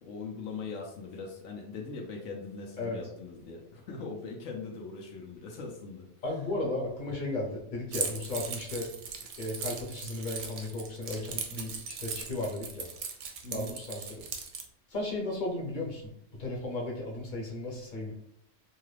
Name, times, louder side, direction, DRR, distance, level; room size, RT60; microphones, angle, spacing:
voice 1, 0.0-6.1 13.4-13.8, left 4 dB, 85° left, -1 dB, 1.0 m, -41 dB
voice 2, 6.2-8.9 9.4-12.9 13.5-14.0 14.9-16.0 16.4-18.1, left 2 dB, 45° left, -2 dB, 0.8 m, -35 dB
Keys jangling, 7.9-14.6, right 6 dB, 75° right, 0.8 m, -38 dB
2.8 x 2.3 x 3.2 m, 0.73 s
omnidirectional pair, 1.2 m